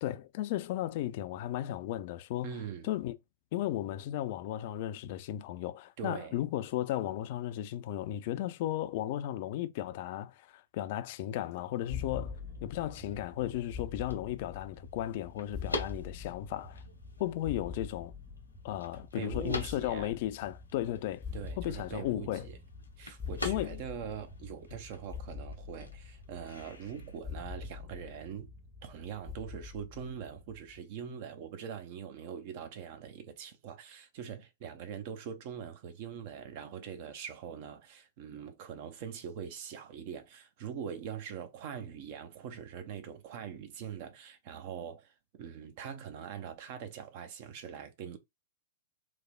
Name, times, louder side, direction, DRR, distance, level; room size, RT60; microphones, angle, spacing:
voice 1, 0.0-2.6 2.8-3.1 3.5-16.8 17.2-18.1 18.6-21.3 21.6-22.5 23.4-23.8, left 13 dB, 50° left, 0.3 m, -35 dB
voice 2, 2.4-2.8 6.0-6.3 19.1-20.1 21.3-22.6 23.0-28.5 28.8-48.2, right 8 dB, 45° right, 0.5 m, -43 dB
sound 1, 11.7-27.2, left 2 dB, 90° left, 0.9 m, -46 dB
sound 2, 11.9-30.8, left 5 dB, 15° left, 0.6 m, -45 dB
3.1 x 2.0 x 2.3 m
figure-of-eight pair, 110°, 0 cm